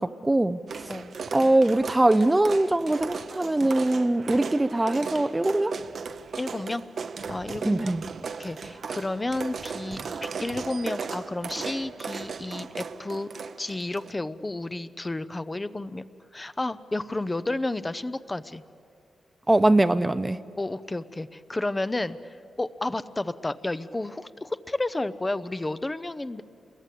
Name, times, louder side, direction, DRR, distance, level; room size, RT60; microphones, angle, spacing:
voice 1, 0.0-0.9 1.3-5.8 7.6-8.0 19.5-20.4, right 1 dB, 15° right, 12 dB, 0.6 m, -22 dB
sound 1, 0.7-14.1, right 5 dB, 65° right, 0.8 m, -36 dB
voice 2, 6.4-6.8 7.3-7.9 8.4-13.3 13.6-16.1 16.3-18.6 20.6-26.4, left 2 dB, 20° left, 13 dB, 0.7 m, -31 dB
28.5 x 22.0 x 8.4 m, 2.5 s
cardioid pair, 85°, 0 cm